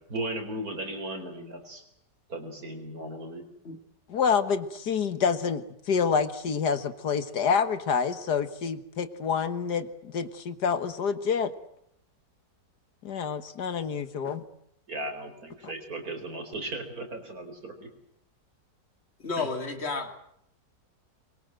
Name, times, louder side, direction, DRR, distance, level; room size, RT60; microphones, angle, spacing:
voice 1, 0.1-1.8 2.3-3.4 14.9-17.9 19.4-19.5, right 1 dB, 55° right, 6 dB, 4.7 m, -36 dB
voice 2, 4.1-11.5 13.0-14.4, left 6 dB, 65° left, 11 dB, 1.9 m, -27 dB
voice 3, 19.2-20.1, left 4 dB, 35° left, 6 dB, 2.7 m, -31 dB
24.0 x 23.0 x 7.8 m, 0.74 s
omnidirectional pair, 1.9 m